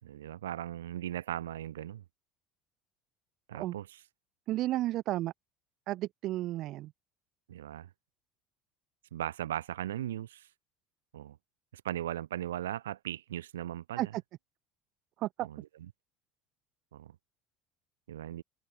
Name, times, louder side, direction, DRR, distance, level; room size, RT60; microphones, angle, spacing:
voice 1, 0.0-2.0 3.5-4.0 7.5-7.9 9.1-10.5 11.1-11.4 11.7-14.1 15.4-15.7 16.9-17.1 18.1-18.4, right 12 dB, 80° right, 7.3 m, -38 dB
voice 2, 4.5-5.3 5.9-6.9 14.0-14.2 15.2-15.5, right 15 dB, 55° right, 3.5 m, -32 dB
hypercardioid pair, 70°, 0 cm